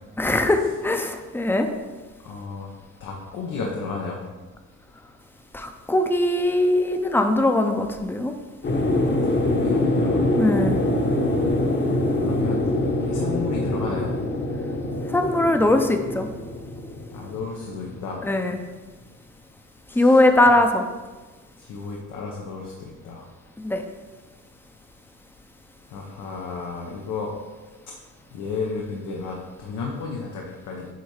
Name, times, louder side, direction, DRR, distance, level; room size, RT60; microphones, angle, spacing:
voice 1, 0.2-1.7 5.5-8.3 10.4-10.8 15.1-16.3 18.2-18.6 20.0-20.8 23.6-23.8, left 1 dB, 5° left, 5 dB, 0.6 m, -20 dB
voice 2, 2.2-2.7 3.0-4.2 9.2-10.5 12.2-12.6 13.0-14.1 17.1-18.2 19.9-20.2 21.6-23.2 25.9-27.3 28.3-30.9, left 4 dB, 85° left, -1 dB, 0.9 m, -32 dB
sound 1, 8.6-18.4, left 1 dB, 35° left, 1.0 m, -24 dB
8.1 x 2.7 x 4.8 m, 1.3 s
cardioid pair, 90°, 30 cm